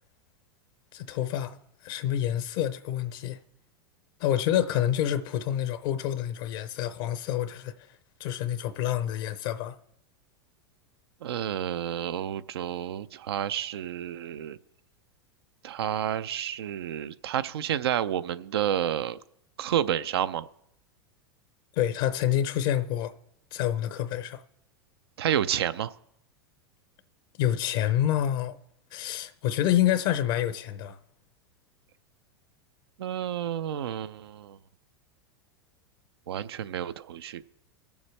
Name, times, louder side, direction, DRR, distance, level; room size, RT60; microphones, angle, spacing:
voice 1, 0.9-1.6 1.8-3.4 4.2-7.9 8.2-9.8 21.8-23.1 23.5-24.4 27.4-28.6 28.9-31.0, left 11 dB, 60° left, 0.7 m, -27 dB
voice 2, 11.2-14.6 15.6-19.2 19.6-20.5 25.2-26.0 33.0-34.6 36.3-37.4, right 10 dB, 80° right, 0.5 m, -30 dB
21.5 x 7.1 x 3.3 m
hypercardioid pair, 105°, 13 cm